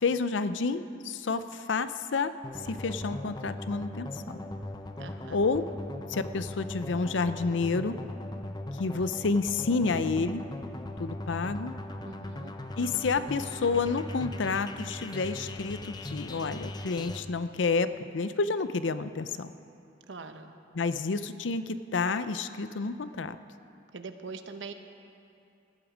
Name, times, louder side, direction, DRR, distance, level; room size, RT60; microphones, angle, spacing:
voice 1, 0.0-2.3 2.6-4.4 5.3-5.7 6.1-8.0 8.8-10.4 11.0-11.7 12.8-19.5 20.7-23.4, left 4 dB, 80° left, 12 dB, 0.6 m, -29 dB
sound 1, 2.4-17.2, left 1 dB, 25° left, 0.7 m, -39 dB
voice 2, 5.0-5.4 12.0-12.5 20.1-20.5 23.9-24.7, right 4 dB, 75° right, 7 dB, 0.9 m, -42 dB
18.5 x 12.0 x 5.0 m, 2.7 s
head